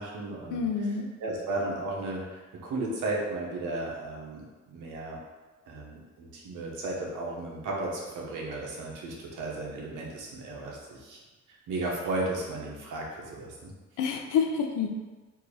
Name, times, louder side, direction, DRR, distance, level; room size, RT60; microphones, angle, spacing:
voice 1, 0.0-0.6 1.2-5.2 5.7-11.2 11.5-13.7, right 2 dB, 85° right, -2 dB, 1.1 m, -34 dB
voice 2, 0.5-1.1 14.0-14.9, left 6 dB, 90° left, 2 dB, 0.7 m, -27 dB
3.6 x 2.7 x 4.7 m, 1.3 s
cardioid pair, 90°, 30 cm